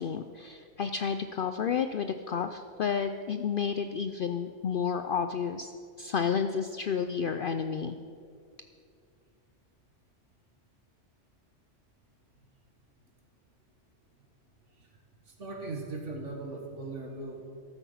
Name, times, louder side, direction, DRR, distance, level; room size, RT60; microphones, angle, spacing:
voice 1, 0.0-5.7 6.0-8.0, left 6 dB, 60° left, 8 dB, 0.6 m, -31 dB
voice 2, 15.3-17.4, right 3 dB, 75° right, 1 dB, 2.0 m, -39 dB
14.0 x 12.5 x 5.7 m, 2.4 s
omnidirectional pair, 1.3 m